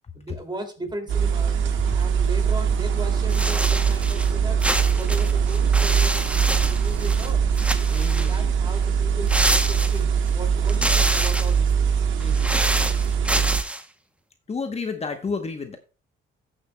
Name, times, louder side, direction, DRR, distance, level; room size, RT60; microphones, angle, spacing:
voice 1, 0.1-1.6 1.9-4.6 5.0-7.5 8.1-12.0, right 1 dB, 20° right, 4 dB, 2.5 m, -37 dB
sound 1, 1.1-13.6, right 7 dB, 80° right, 1.2 m, -22 dB
sound 2, 3.3-4.3 4.6-7.3 7.6-8.4 9.3-10.3 10.7-11.6 12.2-13.8, right 1 dB, 5° right, 0.8 m, -27 dB
voice 2, 7.9-8.5 10.8-11.2 12.2-12.8 14.5-15.8, left 4 dB, 30° left, 7 dB, 1.0 m, -32 dB
16.5 x 6.8 x 2.2 m, 0.34 s
cardioid pair, 90°, 20 cm